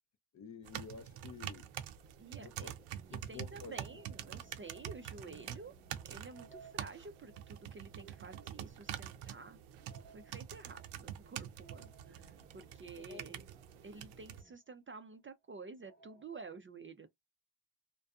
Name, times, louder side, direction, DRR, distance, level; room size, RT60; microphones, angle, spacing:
voice 1, 0.3-1.7 2.4-2.7 3.1-3.8 13.1-13.3, left 5 dB, 40° left, 0.5 m, -50 dB
sound 1, 0.6-14.4, right 10 dB, 85° right, 0.6 m, -46 dB
voice 2, 2.2-2.7 3.1-5.8 6.1-9.6 9.9-13.5 13.8-17.1, right 4 dB, 30° right, 0.4 m, -51 dB
sound 2, 2.7-14.5, right 4 dB, 10° right, 0.8 m, -68 dB
sound 3, 3.8-14.6 15.1-15.2 15.8-16.3, right 5 dB, 20° left, 0.8 m, -63 dB
2.5 x 2.2 x 2.3 m
cardioid pair, 65°, 49 cm